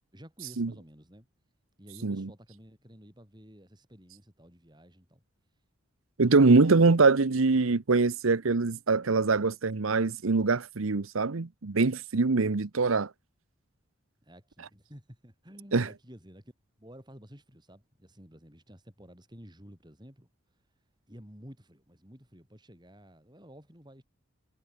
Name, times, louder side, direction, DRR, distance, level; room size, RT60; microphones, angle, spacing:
voice 1, 0.1-1.3 1.8-5.2 6.3-7.0 14.2-16.4 16.8-20.3 21.1-24.0, equal, 20° right, 7.2 m, -51 dB
voice 2, 6.2-13.1 15.7-15.9, right 3 dB, 90° right, 0.9 m, -23 dB
head